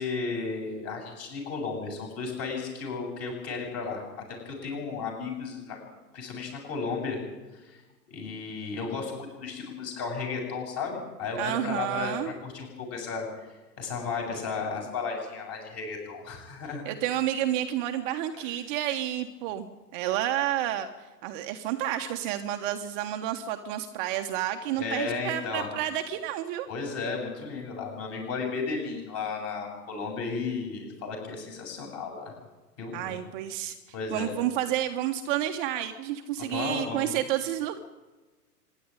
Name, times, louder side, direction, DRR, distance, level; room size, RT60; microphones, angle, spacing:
voice 1, 0.0-4.0 4.4-5.8 6.1-7.2 7.5-7.8 8.1-13.5 13.8-16.8 18.4-18.5 24.8-25.7 26.7-32.3 32.8-33.1 33.9-34.3 36.4-37.1, left 4 dB, 30° left, 1 dB, 7.9 m, -34 dB
voice 2, 11.4-12.3 16.8-26.7 32.9-33.8 34.1-37.8, right 12 dB, 30° right, 6 dB, 1.1 m, -30 dB
25.0 x 11.0 x 9.8 m, 1.2 s
figure-of-eight pair, 105°, 48 cm